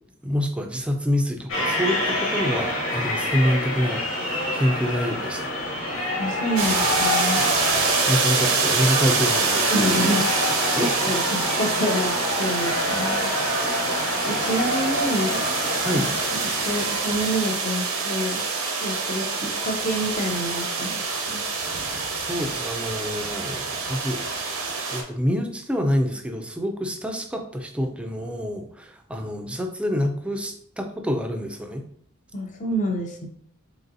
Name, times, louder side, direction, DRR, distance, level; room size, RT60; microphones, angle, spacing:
voice 1, 0.2-4.0 4.5-5.5 7.4-9.7 10.8-11.0 15.8-16.1 22.1-24.2 24.9-31.8, equal, 5° right, 4 dB, 0.4 m, -26 dB
sound 1, 1.5-17.7, left 1 dB, 85° left, 1.4 m, -27 dB
voice 2, 6.2-7.4 9.7-10.3 10.8-13.2 14.3-15.4 15.9-16.1 16.4-18.4 18.8-21.4 32.3-33.3, equal, 35° left, 3 dB, 0.7 m, -27 dB
sound 2, 6.6-25.0, right 4 dB, 90° right, 0.8 m, -26 dB
3.9 x 3.7 x 2.6 m, 0.63 s
head